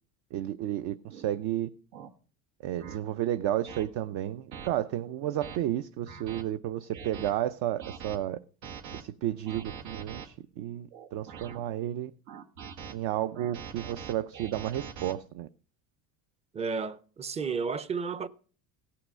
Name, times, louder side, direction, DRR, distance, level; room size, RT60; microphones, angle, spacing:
voice 1, 0.3-1.7 2.6-8.4 8.9-12.1 12.9-15.5, right 12 dB, 60° right, 0.7 m, -32 dB
sound 1, 1.1-1.3 1.9-2.1 2.8-3.0 3.7-3.8 4.5-4.7 5.2-5.6 6.1-6.4 6.9-7.3 7.8-8.2 8.6-9.0 9.5-10.3 10.9-11.6 12.3-12.9 13.3-15.1, right 7 dB, 90° right, 1.6 m, -43 dB
voice 2, 16.5-18.3, right 5 dB, 15° right, 0.4 m, -32 dB
17.0 x 5.8 x 6.2 m
cardioid pair, 130°, 45 cm